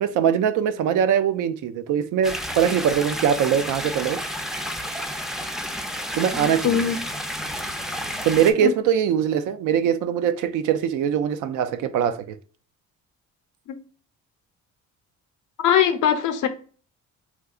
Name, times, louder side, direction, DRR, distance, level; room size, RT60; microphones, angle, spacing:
voice 1, 0.0-4.2 6.1-6.8 8.2-12.4, right 8 dB, 85° right, 0.5 m, -22 dB
sound 1, 2.2-8.5, equal, ahead, 0.4 m, -31 dB
voice 2, 6.3-7.0 8.6-8.7 15.6-16.5, left 9 dB, 80° left, 0.7 m, -21 dB
3.6 x 2.8 x 2.3 m
cardioid pair, 90°, 30 cm